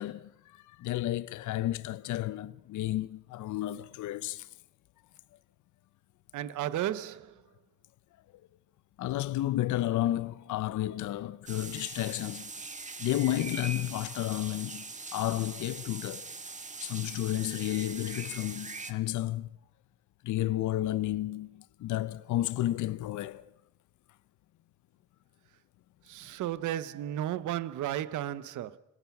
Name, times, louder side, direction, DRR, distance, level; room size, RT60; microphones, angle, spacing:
voice 1, 0.0-4.5 9.0-12.5 13.0-16.3 16.8-19.6 20.2-23.5, left 14 dB, 75° left, 0.7 m, -32 dB
voice 2, 6.3-7.4 26.0-28.8, right 12 dB, 75° right, 1.0 m, -34 dB
sound 1, 11.5-18.9, right 3 dB, 25° right, 1.6 m, -42 dB
27.0 x 17.0 x 5.9 m
cardioid pair, 90°, 30 cm